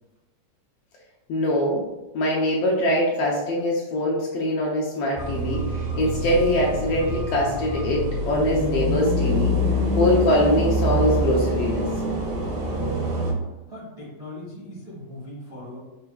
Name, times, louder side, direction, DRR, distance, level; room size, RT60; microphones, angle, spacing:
voice 1, 1.3-1.8 2.1-9.5 10.0-11.9, left 1 dB, 75° left, -4 dB, 1.5 m, -23 dB
sound 1, 5.2-13.3, equal, 80° right, 1.0 m, -25 dB
voice 2, 13.7-15.8, left 1 dB, 50° right, -7 dB, 0.4 m, -40 dB
5.8 x 3.6 x 2.3 m, 1.0 s
omnidirectional pair, 3.3 m